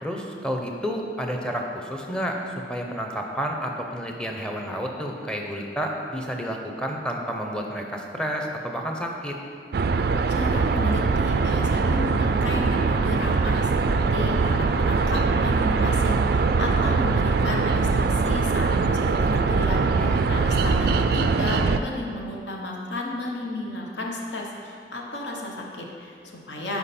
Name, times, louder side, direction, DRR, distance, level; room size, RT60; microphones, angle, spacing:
voice 1, 0.0-9.4 19.9-20.2, equal, 5° left, 1 dB, 0.7 m, -30 dB
sound 1, 9.7-21.8, right 4 dB, 55° right, 0.3 m, -22 dB
voice 2, 10.3-26.8, left 2 dB, 80° left, -1 dB, 1.1 m, -33 dB
10.5 x 4.7 x 4.3 m, 2.4 s
head